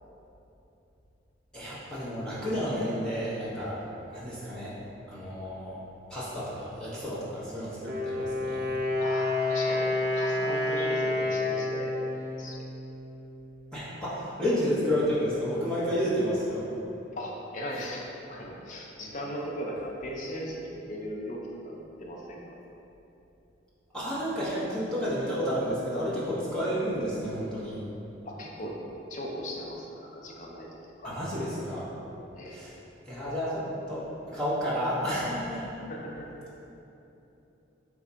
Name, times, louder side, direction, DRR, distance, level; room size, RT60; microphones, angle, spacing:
voice 1, 1.5-3.8 4.1-4.7 5.1-5.8 6.1-8.8 13.7-16.7 23.9-27.8 31.0-31.9 32.5-32.7 33.1-35.8, equal, 5° left, -11 dB, 0.6 m, -31 dB
Wind instrument woodwind instrument, 7.7-13.5, left 2 dB, 60° right, 0.5 m, -29 dB
voice 2, 9.0-12.6 17.1-22.4 28.3-28.7 29.1-30.7 31.0-31.2 32.4-32.6 35.9-36.5, equal, 45° left, -2 dB, 0.4 m, -38 dB
3.4 x 2.1 x 3.8 m, 2.9 s
head